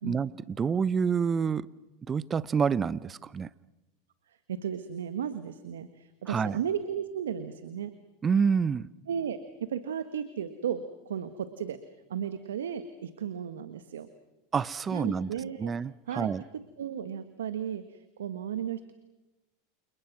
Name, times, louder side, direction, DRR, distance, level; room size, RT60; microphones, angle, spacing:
voice 1, 0.0-1.7 2.1-3.5 6.3-6.6 8.2-8.9 14.5-15.3 15.6-16.4, right 6 dB, 25° right, 0.8 m, -28 dB
voice 2, 4.5-7.9 9.1-11.8 12.1-14.1 14.9-15.7 16.1-18.9, right 8 dB, 80° right, 1.4 m, -35 dB
29.5 x 29.0 x 6.1 m
hypercardioid pair, 95°, 0 cm